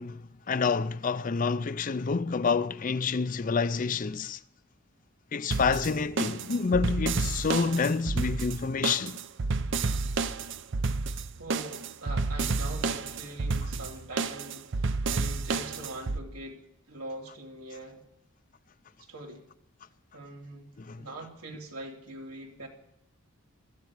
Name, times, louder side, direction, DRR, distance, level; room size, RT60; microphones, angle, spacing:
voice 1, 0.0-4.4 5.3-9.2 20.8-21.1, left 5 dB, 35° left, 0.4 m, -28 dB
sound 1, 5.5-16.2, right 4 dB, 55° right, 0.6 m, -30 dB
voice 2, 11.4-18.0 19.0-19.5 20.1-20.7 21.0-22.7, right 2 dB, 90° right, 3.2 m, -42 dB
16.5 x 14.0 x 4.8 m
head